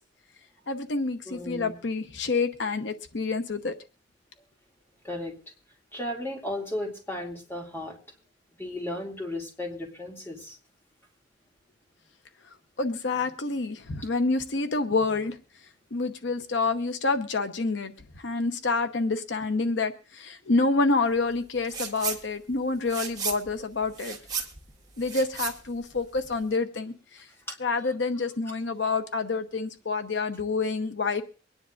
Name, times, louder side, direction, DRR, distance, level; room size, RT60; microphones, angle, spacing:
voice 1, 0.7-3.7 12.8-15.4 15.9-24.2 25.0-27.3 27.6-31.2, left 3 dB, 80° left, 8 dB, 0.9 m, -28 dB
voice 2, 1.3-1.8 5.0-5.3 5.9-8.0 8.6-10.6 27.5-27.6, left 1 dB, 15° left, 0 dB, 2.5 m, -35 dB
sound 1, 21.6-22.2 22.5-26.5, right 6 dB, 20° right, 1.8 m, -35 dB
24.0 x 10.0 x 2.5 m, 0.38 s
head